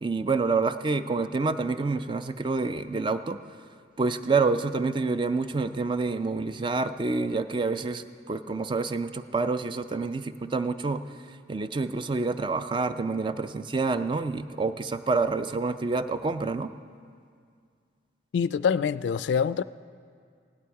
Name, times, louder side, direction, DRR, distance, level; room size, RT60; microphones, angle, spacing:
voice 1, 0.0-3.4 4.0-11.0 11.5-16.7, right 3 dB, 25° right, 0.4 m, -27 dB
voice 2, 18.3-19.6, left 6 dB, 75° left, 0.3 m, -25 dB
16.5 x 11.5 x 4.7 m
head